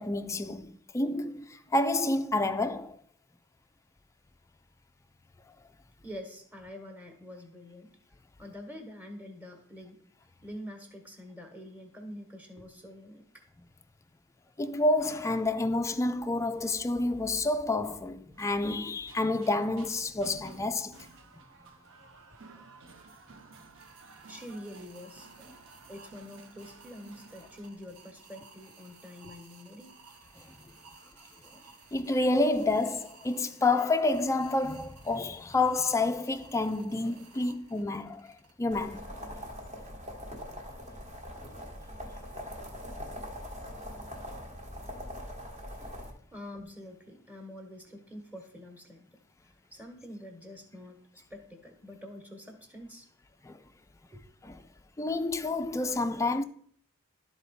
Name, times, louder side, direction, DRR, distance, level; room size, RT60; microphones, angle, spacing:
voice 1, 0.0-3.0 14.6-21.0 30.4-30.6 31.9-39.1 53.4-53.6 54.4-54.6 55.0-56.4, left 2 dB, 15° left, 0.3 m, -29 dB
voice 2, 6.0-7.9 8.4-10.0 10.4-13.4 24.3-25.3 25.9-29.9 46.3-49.1 49.4-53.1 54.1-54.2, left 1 dB, 10° right, 1.3 m, -46 dB
sound 1, 18.3-27.7, right 4 dB, 60° right, 0.9 m, -54 dB
sound 2, 23.8-38.5, right 4 dB, 85° right, 1.1 m, -56 dB
sound 3, 38.7-46.1, equal, 30° right, 1.2 m, -42 dB
12.0 x 4.0 x 4.2 m
head